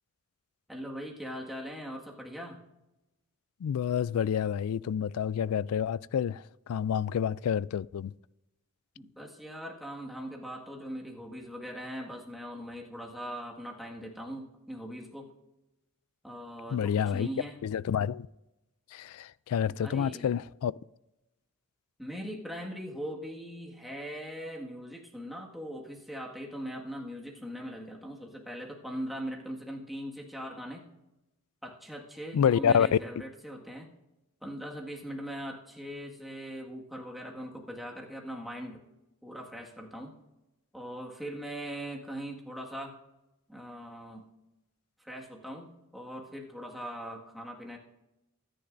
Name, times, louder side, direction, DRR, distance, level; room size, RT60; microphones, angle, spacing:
voice 1, 0.7-2.6 9.0-15.3 16.2-17.6 19.7-20.4 22.0-30.9 31.6-33.9 34.4-38.8 39.2-40.2 40.7-42.9 43.5-44.3 45.0-47.8, equal, ahead, 1.8 m, -40 dB
voice 2, 3.6-8.1 16.7-17.3 17.6-18.3 18.9-20.7 32.3-33.0, left 8 dB, 80° left, 0.3 m, -28 dB
23.5 x 10.0 x 2.6 m
head